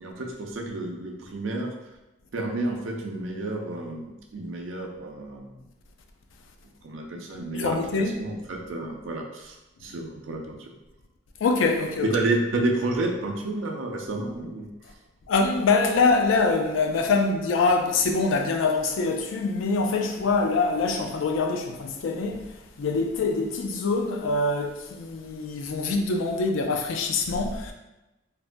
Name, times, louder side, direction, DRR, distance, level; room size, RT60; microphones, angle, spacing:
voice 1, 0.0-1.7 2.3-5.6 6.8-10.7 12.0-14.7, right 2 dB, 90° right, 0.5 m, -30 dB
voice 2, 7.5-8.2 11.4-12.1 15.3-22.5 22.8-27.7, left 3 dB, 80° left, 0.4 m, -24 dB
3.2 x 2.1 x 2.5 m
head